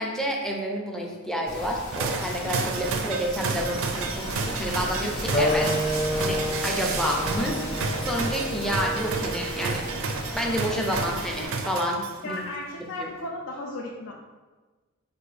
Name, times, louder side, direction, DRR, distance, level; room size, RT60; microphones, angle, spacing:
voice 1, 0.0-5.7 6.2-7.6 8.0-9.8 10.3-12.4 13.0-13.1, equal, 5° left, -1 dB, 0.5 m, -29 dB
sound 1, 1.5-11.5, left 1 dB, 85° left, 1.3 m, -36 dB
sound 2, 1.9-12.3, right 4 dB, 65° right, 0.4 m, -31 dB
Wind instrument woodwind instrument, 5.3-10.4, equal, 25° left, 0.9 m, -30 dB
voice 2, 12.2-14.1, left 2 dB, 65° left, -1 dB, 0.5 m, -35 dB
5.0 x 2.5 x 3.2 m, 1.3 s
head